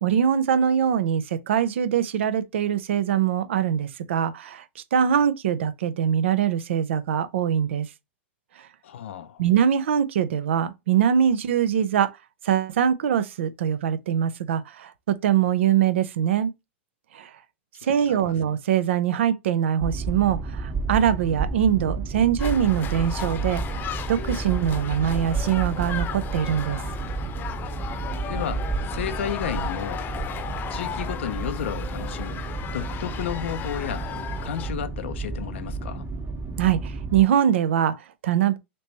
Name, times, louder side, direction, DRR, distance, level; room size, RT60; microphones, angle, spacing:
voice 1, 0.0-7.9 8.6-8.7 9.4-12.1 12.4-16.5 17.1-17.3 17.8-23.6 24.1-26.8 36.6-38.6, right 9 dB, 70° right, 0.7 m, -23 dB
voice 2, 8.8-9.4 18.1-18.3 28.3-30.1 30.7-32.4 32.7-34.1 34.4-36.1, left 10 dB, 70° left, 0.5 m, -32 dB
Boat Water vehicle, 19.8-37.2, right 3 dB, 25° right, 1.2 m, -31 dB
sound 1, 22.4-34.7, left 8 dB, 30° left, 0.8 m, -36 dB
3.3 x 3.0 x 4.0 m
hypercardioid pair, 110°, 7 cm